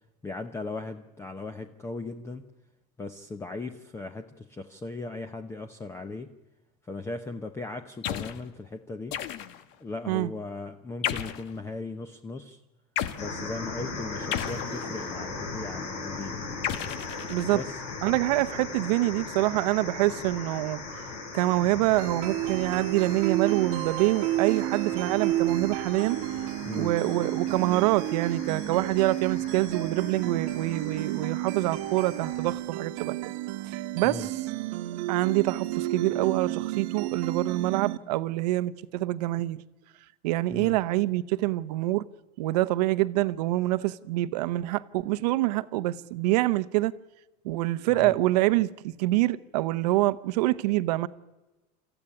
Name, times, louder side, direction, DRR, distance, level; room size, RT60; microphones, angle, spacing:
voice 1, 0.2-2.4 3.0-6.3 6.9-9.2 9.8-12.6 13.2-16.4 17.5-17.8 26.7-26.9 34.0-34.3 40.5-40.8 47.9-48.2, left 3 dB, 15° left, 0.9 m, -38 dB
sound 1, 8.0-8.4 9.1-9.7 11.0-11.5 13.0-13.2 14.3-15.2 16.6-17.7, left 10 dB, 65° left, 1.4 m, -33 dB
sound 2, 13.2-32.5, left 3 dB, 85° left, 6.9 m, -39 dB
voice 2, 17.3-17.6 18.0-21.1 21.3-26.2 26.8-33.4 33.6-34.4 35.1-39.6 40.2-42.1 42.4-46.9 47.4-51.1, right 17 dB, 80° right, 1.0 m, -26 dB
sound 3, 22.0-38.0, right 15 dB, 65° right, 1.2 m, -31 dB
26.0 x 14.5 x 10.0 m
supercardioid pair, 140°, 20 cm